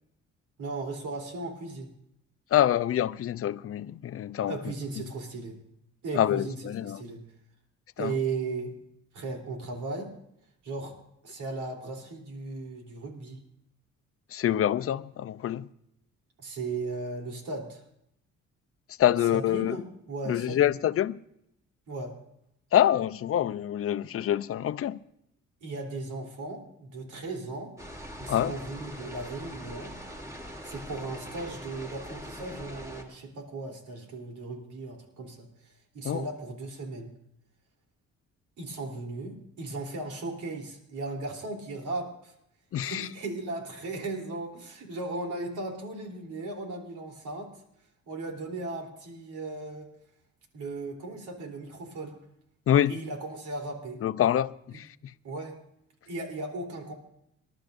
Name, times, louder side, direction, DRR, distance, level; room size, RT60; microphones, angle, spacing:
voice 1, 0.6-1.9 4.5-5.6 6.0-7.2 8.0-8.7 9.1-10.1 10.6-11.0 11.2-13.4 16.4-17.8 19.3-19.8 20.1-20.7 21.9-22.1 25.6-27.7 28.2-29.9 30.6-37.1 38.6-42.3 42.8-47.5 48.1-49.9 50.5-52.1 52.9-54.0 55.2-55.6 56.1-56.9, right 3 dB, 85° right, 3.4 m, -36 dB
voice 2, 2.5-4.5 6.1-7.0 8.0-8.1 14.3-15.7 19.0-19.8 20.3-21.2 22.7-25.0 28.3-28.5 36.0-36.2 42.7-43.1 52.7-53.0 54.0-54.9, left 11 dB, 50° left, 0.5 m, -26 dB
sound 1, 27.8-33.0, equal, 10° right, 2.9 m, -42 dB
26.5 x 11.5 x 2.6 m
cardioid pair, 90°, 30 cm